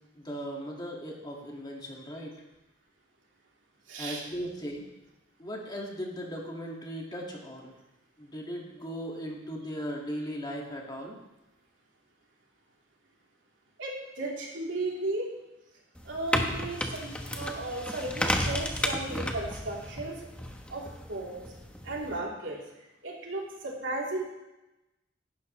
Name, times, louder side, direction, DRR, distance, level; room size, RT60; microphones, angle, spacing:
voice 1, 0.2-2.3 4.0-4.8 5.4-7.7 8.2-11.2, equal, 20° left, -1 dB, 2.0 m, -38 dB
voice 2, 3.9-4.2 13.8-15.3 16.0-20.2 20.7-21.4 21.8-22.6 23.0-24.2, right 2 dB, 80° right, -3 dB, 3.3 m, -35 dB
sound 1, 16.0-22.2, left 1 dB, 5° left, 1.0 m, -33 dB
16.5 x 11.5 x 3.2 m, 0.98 s
head